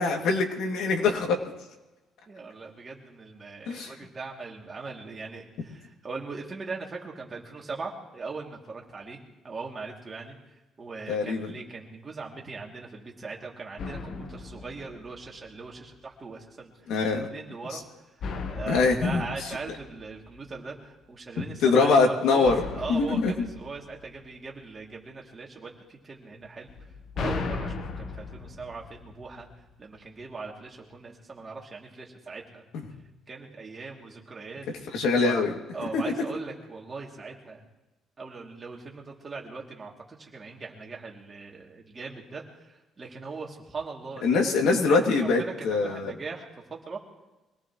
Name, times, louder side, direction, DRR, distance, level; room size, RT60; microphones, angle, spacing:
voice 1, 0.0-1.4 3.7-3.9 11.1-11.5 16.9-17.3 17.7-17.8 18.7-19.2 21.6-22.5 22.9-23.5 34.9-35.5 35.9-36.0 44.2-46.1, left 4 dB, 80° left, 2 dB, 2.5 m, -23 dB
voice 2, 2.3-9.2 9.4-10.4 10.8-16.7 17.0-17.8 18.5-26.7 27.1-29.5 29.8-32.6 33.3-34.6 35.2-35.4 35.7-37.6 38.2-44.4 44.7-47.0, right 4 dB, 25° right, -1 dB, 2.8 m, -40 dB
sound 1, 13.8-15.7 18.2-20.6 22.5-24.7 26.7-29.7, left 4 dB, 50° left, 1.2 m, -37 dB
24.5 x 18.5 x 3.2 m, 1.1 s
cardioid pair, 160°, 0 cm